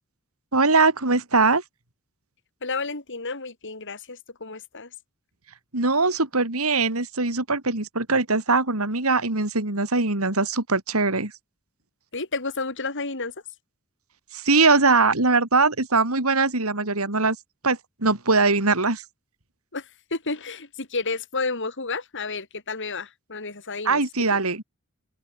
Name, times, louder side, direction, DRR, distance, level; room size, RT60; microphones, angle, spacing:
voice 1, 0.5-1.6 5.7-11.3 14.3-17.4 17.6-19.0 23.9-24.6, right 3 dB, 75° right, 3.6 m, -21 dB
voice 2, 2.6-4.9 12.1-13.3 19.7-24.0 24.3-24.4, left 3 dB, 60° left, 4.9 m, -31 dB
open air
head